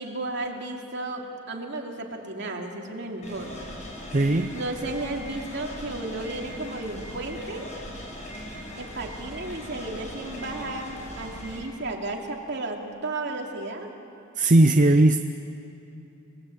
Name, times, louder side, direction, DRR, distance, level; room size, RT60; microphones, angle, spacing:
voice 1, 0.0-3.6 4.5-7.7 8.8-13.9, right 2 dB, 55° right, 1 dB, 2.9 m, -33 dB
sound 1, 3.2-11.6, equal, 35° left, 6.7 m, -39 dB
voice 2, 4.1-4.5 14.4-15.2, right 1 dB, 35° right, 8 dB, 0.6 m, -18 dB
29.5 x 19.5 x 8.6 m, 2.9 s
head